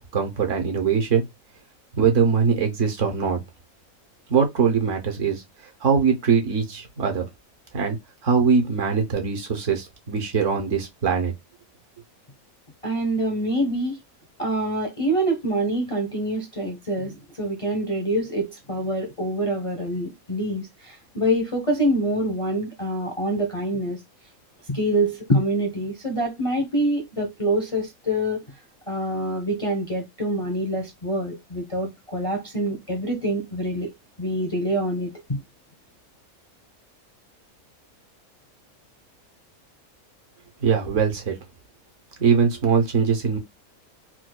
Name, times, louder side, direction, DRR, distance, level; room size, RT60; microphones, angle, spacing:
voice 1, 0.1-1.2 1.9-3.4 4.3-5.4 5.8-7.3 7.7-8.0 8.2-11.3 40.6-41.4 42.2-43.4, right 6 dB, 60° right, 1.1 m, -22 dB
voice 2, 12.8-14.0 14.4-24.0 24.7-28.4 28.9-33.9 34.2-35.4, right 1 dB, 35° left, 0.5 m, -25 dB
4.4 x 2.3 x 2.2 m
omnidirectional pair, 1.5 m